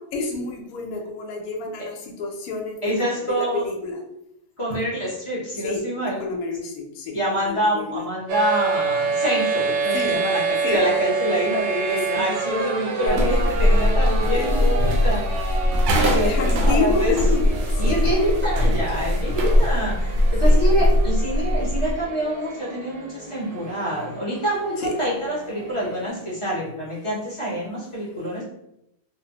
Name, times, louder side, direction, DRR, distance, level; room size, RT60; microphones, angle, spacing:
voice 1, 0.0-4.0 4.7-4.8 5.6-8.0 9.9-10.2 10.6-10.8 11.9-13.4 14.3-14.5 16.2-19.0 20.4-21.1 24.8-24.9, left 4 dB, 70° left, 2 dB, 1.0 m, -30 dB
voice 2, 2.8-3.6 4.6-6.2 7.1-15.2 15.9-17.1 17.8-28.4, right 1 dB, 35° left, -7 dB, 0.5 m, -26 dB
sound 1, 8.3-26.1, right 4 dB, 85° right, 1.2 m, -29 dB
sound 2, 13.1-22.0, left 1 dB, 70° right, 0.7 m, -20 dB
2.9 x 2.0 x 2.8 m, 0.82 s
omnidirectional pair, 1.7 m